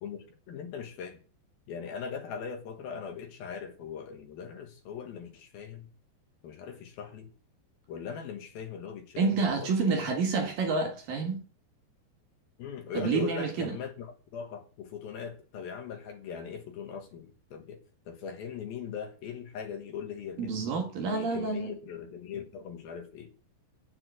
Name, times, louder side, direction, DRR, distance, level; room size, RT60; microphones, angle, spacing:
voice 1, 0.0-1.2 1.7-5.9 6.4-7.3 7.9-10.1 12.6-20.6 21.0-23.3, left 7 dB, 65° left, 2.9 m, -40 dB
voice 2, 9.2-11.4 12.9-13.7 20.4-21.7, right 4 dB, 60° right, 3.1 m, -28 dB
8.7 x 8.1 x 7.8 m
omnidirectional pair, 5.1 m